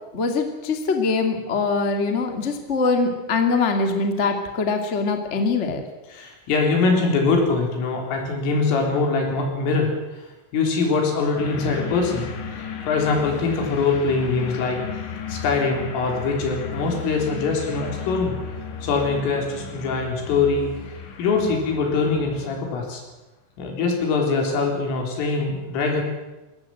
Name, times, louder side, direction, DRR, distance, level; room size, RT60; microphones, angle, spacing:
voice 1, 0.1-5.8, left 4 dB, 35° left, 5 dB, 1.1 m, -23 dB
voice 2, 6.1-12.2 12.5-14.8 15.3-18.4 18.8-23.0 23.6-26.0, left 4 dB, 90° left, 2 dB, 6.5 m, -23 dB
sound 1, 11.4-22.8, left 6 dB, 70° left, 4.5 m, -35 dB
21.5 x 17.0 x 7.9 m, 1.1 s
omnidirectional pair, 5.6 m